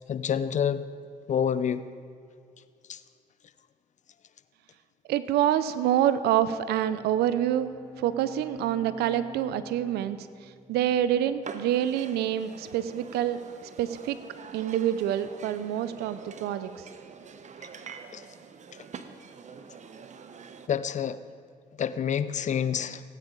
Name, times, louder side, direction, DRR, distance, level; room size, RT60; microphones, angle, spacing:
voice 1, 0.1-0.8 1.3-1.8 2.9-3.0 18.1-18.2 20.7-21.2 21.8-23.0, left 8 dB, 45° left, 13 dB, 0.6 m, -27 dB
voice 2, 5.1-7.7 8.0-10.2 10.7-13.4 13.8-14.2 14.5-16.7, right 11 dB, 80° right, 13 dB, 0.6 m, -26 dB
Bowed string instrument, 6.3-11.8, left 1 dB, 5° left, 1.8 m, -49 dB
sound 1, 11.4-20.7, right 6 dB, 45° right, 0.8 m, -45 dB
16.5 x 8.8 x 3.8 m, 2.2 s
supercardioid pair, 65°, 17 cm